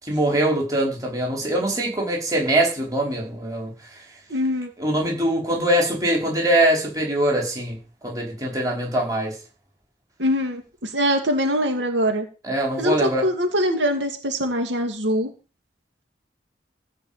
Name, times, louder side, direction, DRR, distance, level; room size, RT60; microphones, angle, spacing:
voice 1, 0.0-3.7 4.8-7.8 8.0-9.4 12.4-13.2, right 1 dB, 20° right, 5.0 m, -22 dB
voice 2, 4.3-4.7 10.2-12.3 12.8-15.3, equal, 90° right, 2.5 m, -23 dB
15.5 x 5.3 x 8.9 m
head